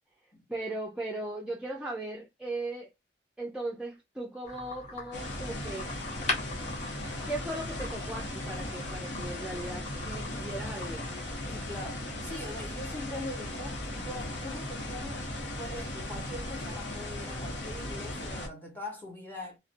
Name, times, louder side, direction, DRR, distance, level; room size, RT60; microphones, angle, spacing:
voice 1, 0.5-2.9 3.4-5.9 7.3-11.1, right 2 dB, 5° right, 0.4 m, -38 dB
sound 1, 4.4-11.5, left 2 dB, 40° left, 0.6 m, -41 dB
sound 2, 5.1-18.5, left 1 dB, 75° left, 0.8 m, -37 dB
voice 2, 11.5-15.3 15.6-19.6, left 1 dB, 10° left, 0.9 m, -42 dB
2.6 x 2.1 x 2.5 m
head